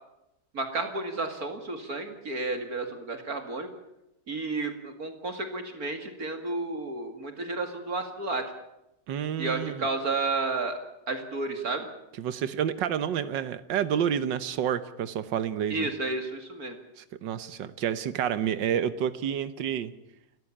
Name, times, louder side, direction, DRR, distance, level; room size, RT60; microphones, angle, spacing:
voice 1, 0.5-3.7 4.3-8.4 9.4-10.8 11.1-11.9 15.7-16.8, right 3 dB, 55° right, 6 dB, 2.6 m, -31 dB
voice 2, 9.1-9.8 12.2-15.9 17.0-19.9, right 9 dB, 90° right, 13 dB, 1.7 m, -29 dB
29.0 x 14.0 x 8.6 m, 0.88 s
omnidirectional pair, 1.9 m